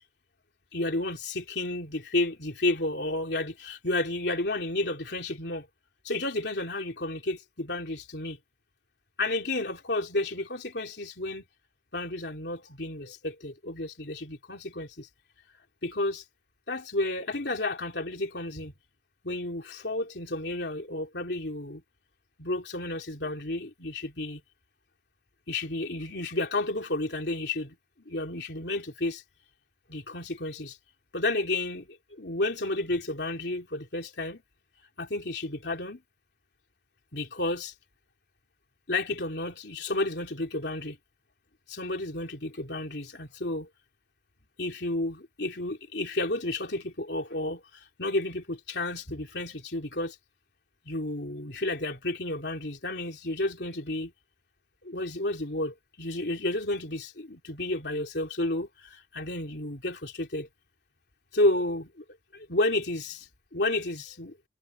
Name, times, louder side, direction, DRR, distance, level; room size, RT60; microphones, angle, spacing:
voice 1, 0.7-5.7 6.0-8.4 9.2-11.4 11.9-15.1 15.8-16.2 16.7-18.7 19.2-21.8 22.4-24.4 25.5-27.8 28.0-29.2 29.9-30.8 31.1-34.4 35.0-36.0 37.1-37.7 38.9-41.0 41.7-43.7 44.6-50.2 50.8-54.1 54.8-60.5 61.3-62.0 62.3-64.4, left 2 dB, 65° left, 3.2 m, -31 dB
head